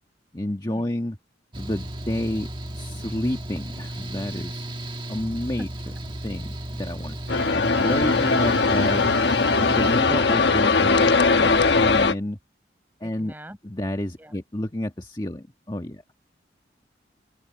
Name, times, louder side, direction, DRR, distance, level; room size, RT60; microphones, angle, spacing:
voice 1, 0.3-1.2 1.6-2.5 2.7-4.6 5.1-5.7 6.2-7.4 7.8-9.1 9.6-12.4 13.0-13.3 13.6-16.0, left 1 dB, 25° left, 1.4 m, -30 dB
Mechanical fan, 1.5-10.0, right 1 dB, 25° right, 1.5 m, -34 dB
sound 1, 7.3-12.1, left 4 dB, 70° left, 1.2 m, -20 dB
voice 2, 13.0-13.6 14.2-14.3, equal, 10° right, 5.6 m, -41 dB
open air
head